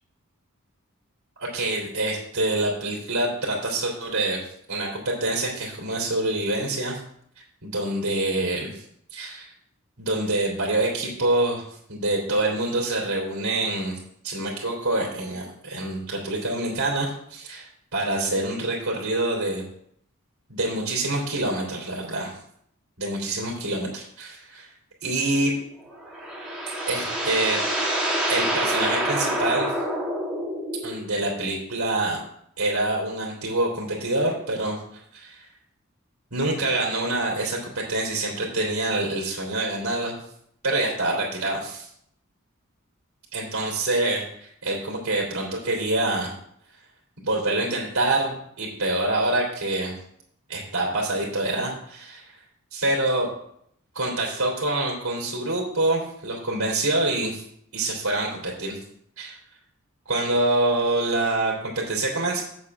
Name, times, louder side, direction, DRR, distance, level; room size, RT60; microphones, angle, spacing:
voice 1, 1.4-7.0 7.6-8.8 9.1-9.5 10.0-11.6 11.9-14.0 14.2-19.6 20.5-22.4 23.0-24.7 25.0-25.5 26.9-27.6 28.3-29.8 30.8-32.2 32.6-34.8 35.1-35.4 36.3-40.1 40.6-41.9 43.3-46.3 47.2-50.0 50.5-52.4 52.7-53.3 53.9-57.4 57.7-58.8 59.2-59.4 60.0-62.4, right 2 dB, 80° right, -4 dB, 2.9 m, -26 dB
sound 1, 25.8-31.0, right 1 dB, 5° right, 2.2 m, -27 dB
8.0 x 5.6 x 7.4 m, 0.69 s
head